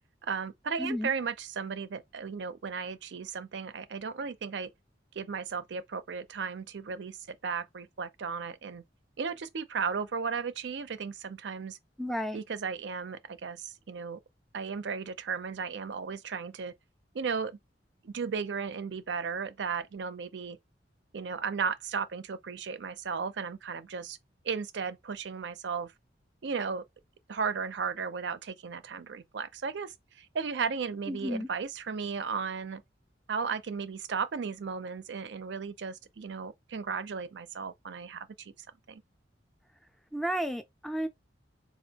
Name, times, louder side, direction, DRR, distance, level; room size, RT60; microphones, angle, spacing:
voice 1, 0.2-4.7 5.1-8.8 9.2-11.8 12.3-14.2 14.5-16.7 17.1-17.6 18.0-20.6 21.1-24.2 24.4-25.9 26.4-26.8 27.3-32.8 33.3-38.5 38.9-39.0, right 5 dB, 70° right, 0.5 m, -35 dB
voice 2, 0.8-1.1 12.0-12.4 31.1-31.5 40.1-41.1, equal, ahead, 0.4 m, -32 dB
4.0 x 2.5 x 2.8 m
head